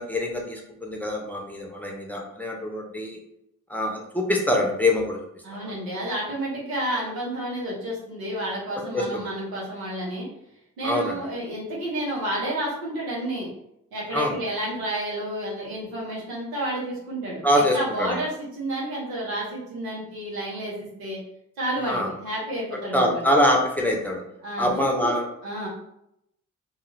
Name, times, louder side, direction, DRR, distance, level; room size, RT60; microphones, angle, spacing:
voice 1, 0.0-3.2 3.7-5.2 5.6-5.7 8.9-9.2 10.8-11.2 14.1-14.4 17.4-18.2 21.8-22.1 22.7-24.2 24.6-25.3, left 1 dB, 5° left, -1 dB, 0.7 m, -24 dB
voice 2, 5.4-10.3 10.8-13.5 13.9-21.2 21.6-23.2 24.4-25.1 25.4-25.7, right 1 dB, 85° right, -5 dB, 1.0 m, -30 dB
2.4 x 2.3 x 3.1 m, 0.79 s
hypercardioid pair, 45°, 35 cm